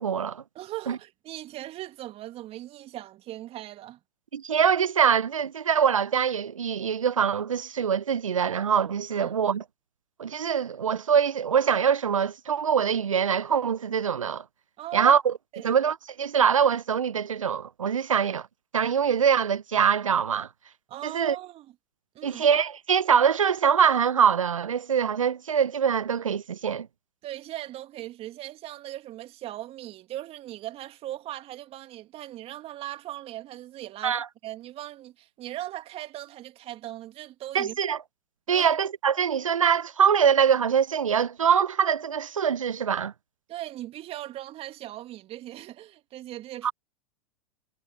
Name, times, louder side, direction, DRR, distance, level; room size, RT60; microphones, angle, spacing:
voice 1, 0.0-0.4 0.9-1.0 4.3-9.6 10.2-14.4 14.9-15.3 15.6-18.5 18.7-20.5 21.0-21.4 22.2-26.9 34.0-34.3 37.5-38.0 38.5-43.1 46.6-46.7, right 7 dB, 80° right, 0.9 m, -23 dB
voice 2, 0.5-4.0 9.1-9.4 14.8-15.1 15.5-15.7 20.9-21.7 22.1-22.4 27.2-37.8 38.5-38.7 43.5-46.7, right 14 dB, 35° right, 2.4 m, -39 dB
figure-of-eight pair, 90°, 17 cm